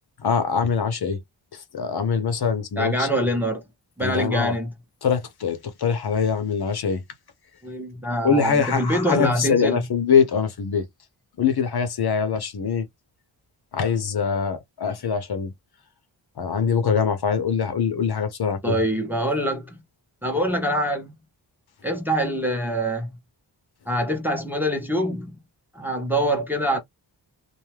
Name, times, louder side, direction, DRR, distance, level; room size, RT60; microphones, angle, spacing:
voice 1, 0.2-1.2 1.5-3.1 4.0-4.6 5.0-7.0 8.2-10.8 11.4-12.9 13.7-15.5 16.4-18.8, left 6 dB, 60° left, 0.7 m, -23 dB
voice 2, 2.8-3.6 4.0-4.7 7.6-9.8 18.6-19.8 20.2-21.2 21.8-23.2 23.9-25.4 25.7-26.8, equal, 5° right, 0.7 m, -24 dB
2.5 x 2.3 x 3.2 m
wide cardioid pair, 125°, 45 cm